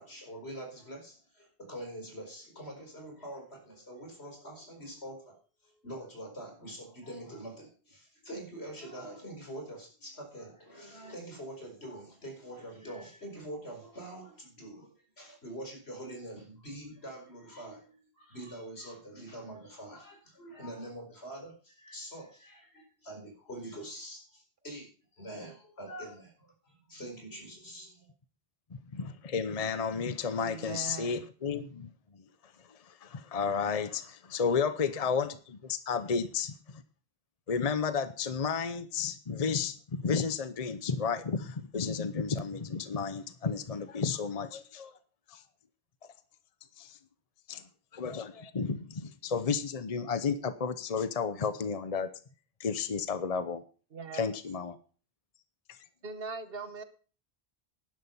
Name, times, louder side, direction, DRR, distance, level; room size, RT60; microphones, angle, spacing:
voice 1, 0.0-5.4 5.6-24.9 25.2-27.9, right 1 dB, 85° left, 2 dB, 4.9 m, -45 dB
voice 2, 28.7-31.9 32.8-36.5 37.5-44.9 45.3-45.4 46.8-47.0 47.5-47.6 47.9-52.1 52.6-53.6 54.1-54.8 55.7-55.8, left 5 dB, 40° left, 12 dB, 0.9 m, -32 dB
voice 3, 30.4-31.3 53.9-54.4 56.0-56.8, right 5 dB, 65° right, 11 dB, 1.4 m, -41 dB
11.5 x 10.5 x 5.5 m, 0.39 s
omnidirectional pair, 1.1 m